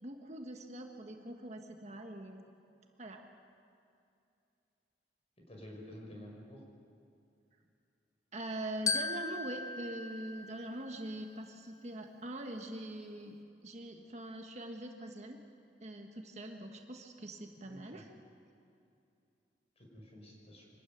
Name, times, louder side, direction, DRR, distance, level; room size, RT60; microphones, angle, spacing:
voice 1, 0.0-2.4 3.0-3.2 8.3-13.4 13.6-15.4 15.8-18.1, right 1 dB, 40° right, 3 dB, 1.4 m, -43 dB
voice 2, 5.5-6.6 17.6-18.1 19.8-20.7, equal, 35° left, -1 dB, 5.7 m, -50 dB
Glockenspiel, 8.9-11.3, left 4 dB, 20° left, 0.5 m, -38 dB
25.0 x 13.0 x 9.4 m, 2.5 s
head